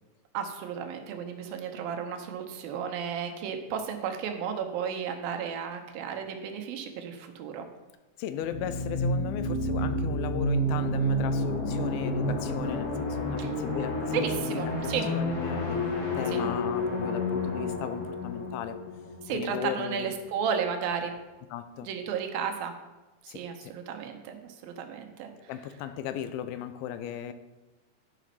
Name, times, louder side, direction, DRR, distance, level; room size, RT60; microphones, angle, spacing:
voice 1, 0.3-7.7 13.4-13.5 14.1-15.1 16.3-16.4 19.2-21.1 21.8-22.7 23.2-25.3, right 7 dB, 80° right, 5 dB, 2.7 m, -33 dB
voice 2, 8.2-18.8 19.3-20.1 21.5-21.9 23.3-23.7 25.5-27.3, left 10 dB, 85° left, 11 dB, 2.5 m, -37 dB
sound 1, 8.4-20.0, left 1 dB, 45° left, 1.8 m, -30 dB
11.0 x 5.1 x 5.6 m, 1.1 s
omnidirectional pair, 4.2 m